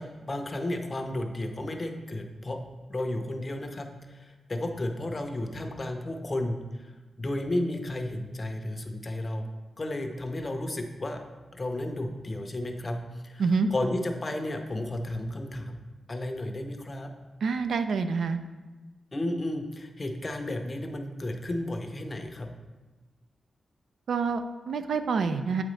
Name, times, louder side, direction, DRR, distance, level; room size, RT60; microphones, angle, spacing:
voice 1, 0.0-2.6 2.9-6.9 7.2-9.5 9.8-11.2 11.5-13.4 13.7-17.1 19.1-22.5, left 1 dB, 25° left, 5 dB, 0.6 m, -33 dB
voice 2, 17.4-18.4 24.1-25.6, right 5 dB, 70° right, 9 dB, 0.3 m, -27 dB
7.6 x 5.0 x 3.1 m, 1.2 s
wide cardioid pair, 145°, 0 cm